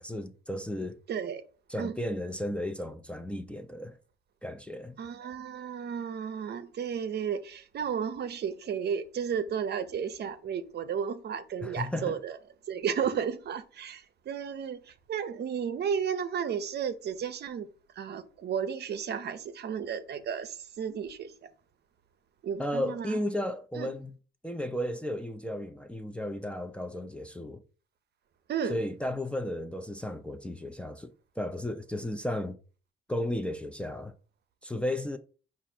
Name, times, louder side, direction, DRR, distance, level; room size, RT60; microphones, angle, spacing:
voice 1, 0.0-1.0 1.7-4.0 4.4-5.0 11.6-12.2 22.6-24.1 24.4-27.6 28.7-32.6 33.1-34.1 34.6-35.2, left 1 dB, 5° left, 0.5 m, -34 dB
voice 2, 1.1-1.4 1.8-2.0 5.0-12.4 12.7-17.7 18.0-21.3 22.4-23.2 23.8-23.9 28.5-28.8, right 7 dB, 55° right, 0.6 m, -33 dB
4.8 x 2.5 x 4.2 m
cardioid pair, 90°, 20 cm